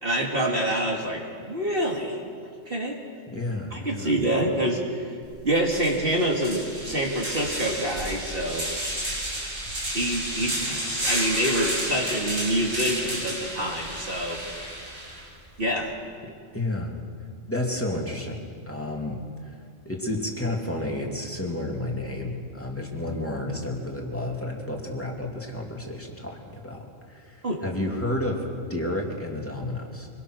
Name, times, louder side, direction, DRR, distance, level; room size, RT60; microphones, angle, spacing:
voice 1, 0.0-2.2 2.7-3.0 3.7-5.0 5.4-8.7 9.9-10.6 11.0-14.4 15.6-15.9 27.4-27.6, right 1 dB, 45° right, -1 dB, 2.5 m, -26 dB
voice 2, 3.3-4.1 16.2-16.9 17.5-18.4 18.7-28.4 28.7-30.1, left 1 dB, 10° left, -1 dB, 2.9 m, -31 dB
sound 1, 5.2-5.3 5.7-15.2, right 1 dB, 85° right, 6.8 m, -31 dB
25.0 x 22.5 x 6.4 m, 2.2 s
omnidirectional pair, 1.3 m